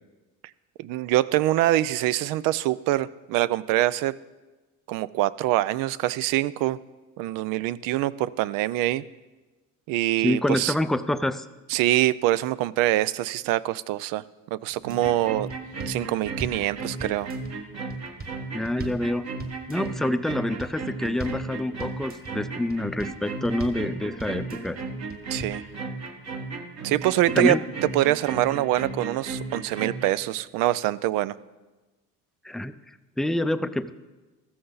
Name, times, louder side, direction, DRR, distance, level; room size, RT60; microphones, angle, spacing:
voice 1, 0.8-4.1 4.9-6.8 7.2-9.0 9.9-10.7 11.7-14.2 14.5-15.5 15.9-17.3 25.3-25.6 26.8-27.5 27.9-31.4, right 15 dB, 90° right, 18 dB, 0.5 m, -24 dB
voice 2, 10.2-11.5 18.5-19.3 19.7-24.8 27.3-27.6 32.4-32.8 33.2-33.9, left 1 dB, ahead, 11 dB, 0.4 m, -26 dB
sound 1, 14.7-15.1 15.5-16.7 17.0-17.5 17.9-19.1 19.4-19.9 20.3-20.8 21.0-21.5 21.8-22.3 22.7-23.2 23.4-23.9 24.2-24.7 25.1-25.6, right 3 dB, 30° right, 1.4 m, -39 dB
sound 2, 14.8-30.2, right 3 dB, 50° right, 1.5 m, -35 dB
14.5 x 13.5 x 4.0 m, 1.2 s
cardioid pair, 105°, 32 cm